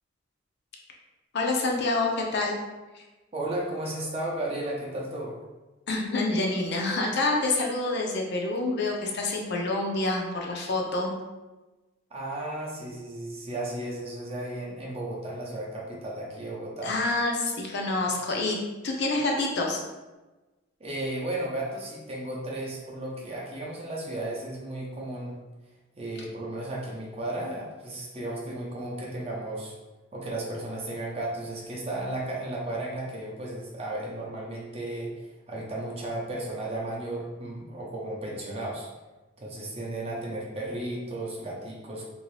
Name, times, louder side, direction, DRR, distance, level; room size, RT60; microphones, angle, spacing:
voice 1, 1.3-2.6 2.9-3.0 5.9-11.1 16.8-18.6 18.8-19.8, left 2 dB, 55° left, 0 dB, 0.5 m, -27 dB
voice 2, 3.3-5.3 12.1-17.0 20.8-25.4 26.0-29.8 30.1-35.1 35.5-38.9 39.4-42.0, right 1 dB, 30° right, -3 dB, 0.6 m, -34 dB
3.0 x 2.6 x 3.2 m, 1.1 s
head